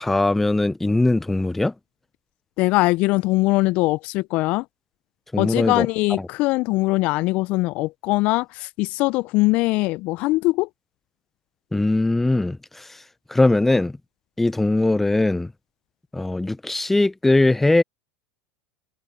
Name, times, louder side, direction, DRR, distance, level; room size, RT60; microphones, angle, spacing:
voice 1, 0.0-1.7 5.3-5.9 11.7-12.6 13.3-13.9 14.4-15.5 16.1-17.8, left 2 dB, 10° left, 0.8 m, -20 dB
voice 2, 2.6-4.6 5.4-10.7, left 21 dB, 55° left, 0.6 m, -21 dB
hypercardioid pair, 80°, 3 cm